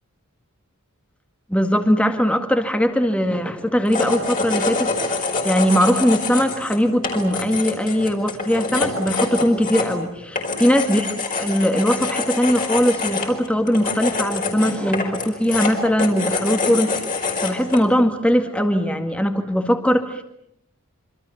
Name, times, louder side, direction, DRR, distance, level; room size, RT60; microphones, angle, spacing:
voice 1, 1.5-11.1 11.4-17.0 17.4-20.2, equal, 5° left, 5 dB, 2.0 m, -20 dB
sound 1, 3.8-17.9, left 3 dB, 40° left, 5.0 m, -26 dB
27.0 x 25.5 x 7.2 m, 0.77 s
head